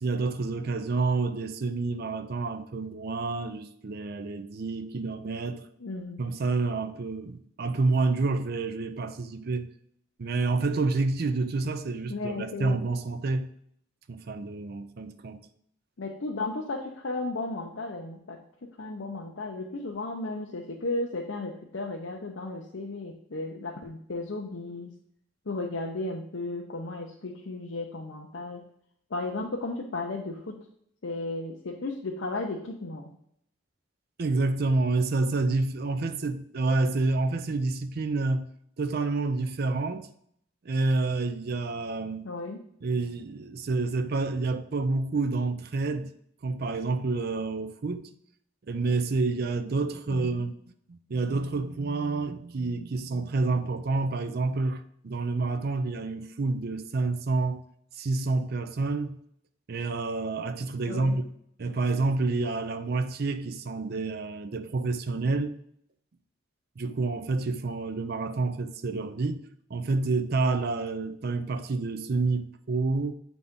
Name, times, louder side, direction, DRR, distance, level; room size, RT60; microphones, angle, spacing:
voice 1, 0.0-5.7 6.2-9.7 10.2-13.5 14.1-15.5 34.2-38.5 38.8-40.1 40.6-42.3 42.8-46.1 46.4-48.1 48.7-50.6 50.9-57.6 57.9-59.2 59.7-61.2 61.6-65.5 66.8-69.4 69.7-73.1, right 3 dB, 50° right, 0.5 m, -28 dB
voice 2, 5.8-6.2 12.1-12.8 16.0-18.4 18.8-24.9 25.5-28.6 29.1-30.5 31.0-33.1 42.2-42.6 50.1-50.4 60.9-61.2, left 2 dB, 70° left, 0.7 m, -34 dB
8.0 x 4.0 x 3.6 m
head